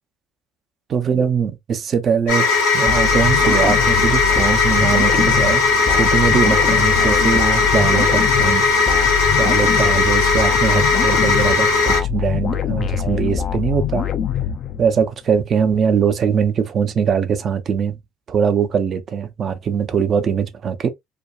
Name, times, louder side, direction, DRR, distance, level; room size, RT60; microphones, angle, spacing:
voice 1, 0.9-5.6 5.9-8.8 9.4-14.1 14.8-18.0 18.3-20.9, right 7 dB, 45° right, 0.6 m, -21 dB
sound 1, 2.3-12.0, left 4 dB, 80° left, 1.1 m, -17 dB
sound 2, 2.9-15.1, left 9 dB, 50° left, 0.5 m, -24 dB
2.9 x 2.2 x 2.3 m
hypercardioid pair, 60°, 0 cm